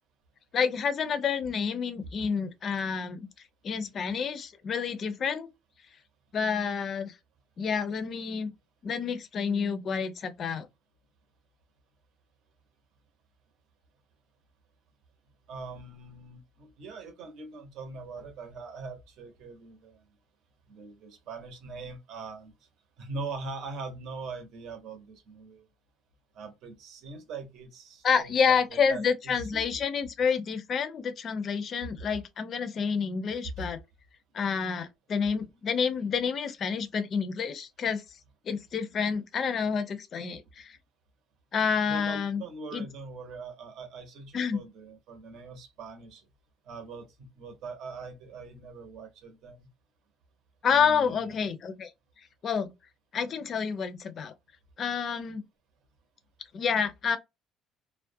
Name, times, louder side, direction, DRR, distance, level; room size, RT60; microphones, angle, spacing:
voice 1, 0.5-3.3 3.6-5.5 6.3-7.1 7.6-8.5 8.8-10.7 28.0-33.8 34.3-38.0 38.5-40.7 41.5-42.4 42.7-42.9 44.3-44.6 50.6-51.9 52.4-52.7 53.1-54.3 54.8-55.4 56.5-57.2, left 6 dB, 35° left, 0.4 m, -29 dB
voice 2, 15.5-20.0 20.7-22.5 23.0-25.6 26.3-29.8 32.0-32.1 33.4-33.7 41.9-46.2 46.7-49.7 50.7-51.5, right 3 dB, 60° right, 0.8 m, -42 dB
2.3 x 2.1 x 2.6 m
cardioid pair, 155°, 0 cm